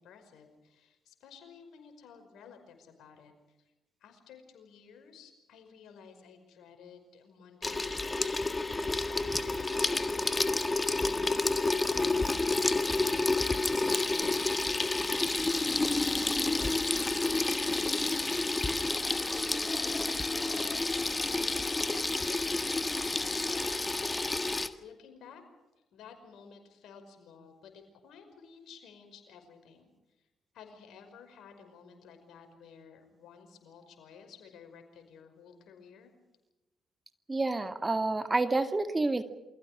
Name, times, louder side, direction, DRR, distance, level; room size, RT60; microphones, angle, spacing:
voice 1, 0.0-3.7 4.0-14.9 15.2-20.9 21.2-25.4 25.9-29.9 30.2-30.3 30.5-36.1, left 6 dB, 65° left, 6 dB, 5.4 m, -54 dB
Water tap faucet / Sink (filling or washing), 7.6-24.7, left 2 dB, 25° left, 1.8 m, -29 dB
voice 2, 37.3-39.2, right 2 dB, 25° right, 8 dB, 2.1 m, -29 dB
28.5 x 24.0 x 5.0 m, 1.1 s
hypercardioid pair, 45°, 0 cm